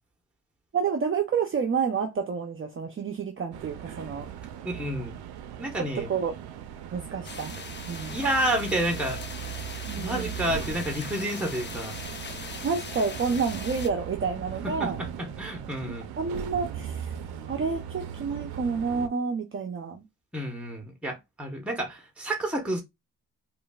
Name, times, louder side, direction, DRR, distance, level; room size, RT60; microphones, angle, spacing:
voice 1, 0.7-4.3 5.8-6.4 6.9-7.5 7.9-8.2 9.9-10.3 12.6-15.0 15.9-17.1 17.5-20.0, right 5 dB, 35° right, 0.7 m, -29 dB
sound 1, 3.5-19.1, right 9 dB, 85° right, 0.6 m, -38 dB
voice 2, 4.6-5.2 5.6-6.1 8.1-9.2 9.9-12.0 14.6-16.1 20.3-22.8, right 1 dB, 5° right, 1.2 m, -30 dB
sound 2, 7.2-13.9, left 4 dB, 30° left, 0.7 m, -40 dB
5.0 x 2.6 x 2.4 m
cardioid pair, 90°, 36 cm